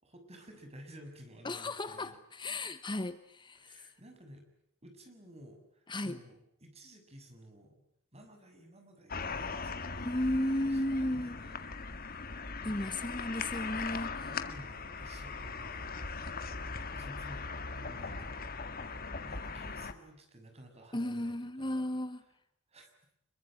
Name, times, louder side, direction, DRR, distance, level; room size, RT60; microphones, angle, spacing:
voice 1, 0.0-2.2 3.6-4.5 4.8-7.8 8.1-11.6 12.6-13.1 14.2-16.2 16.9-18.8 19.2-21.9 22.7-22.9, equal, 30° right, 5 dB, 6.9 m, -53 dB
voice 2, 1.4-3.9 5.9-6.2 10.0-11.4 12.6-14.3 20.9-22.2, left 1 dB, 25° left, 12 dB, 1.1 m, -34 dB
sound 1, 9.1-19.9, left 4 dB, 45° left, 2.0 m, -40 dB
26.5 x 23.0 x 9.0 m, 0.76 s
head